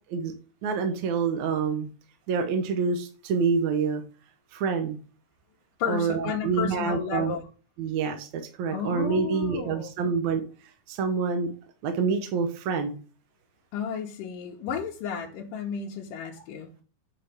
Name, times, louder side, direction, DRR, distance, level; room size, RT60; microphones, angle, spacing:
voice 1, 0.6-1.9 2.3-4.0 4.5-5.0 5.9-7.3 7.8-10.4 10.9-11.5 11.8-13.0, right 5 dB, 70° right, 6 dB, 2.1 m, -27 dB
voice 2, 5.8-7.4 8.7-9.9 13.7-16.7, left 7 dB, 90° left, -1 dB, 2.6 m, -32 dB
8.8 x 4.8 x 3.4 m, 0.37 s
omnidirectional pair, 3.7 m